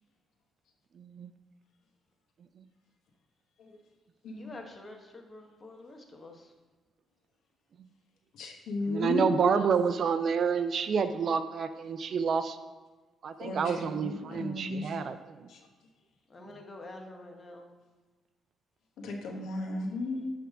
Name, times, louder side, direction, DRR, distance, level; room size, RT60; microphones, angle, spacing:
voice 1, 1.0-1.3 8.9-12.6 13.2-15.5, right 6 dB, 55° right, 10 dB, 0.5 m, -29 dB
voice 2, 4.3-6.4 16.3-17.7, left 2 dB, 30° left, 3 dB, 1.2 m, -47 dB
voice 3, 8.3-9.6 13.4-15.0 15.5-15.6 19.0-20.3, left 2 dB, 80° left, 2 dB, 1.1 m, -34 dB
10.0 x 3.5 x 5.0 m, 1.3 s
cardioid pair, 90°, 0 cm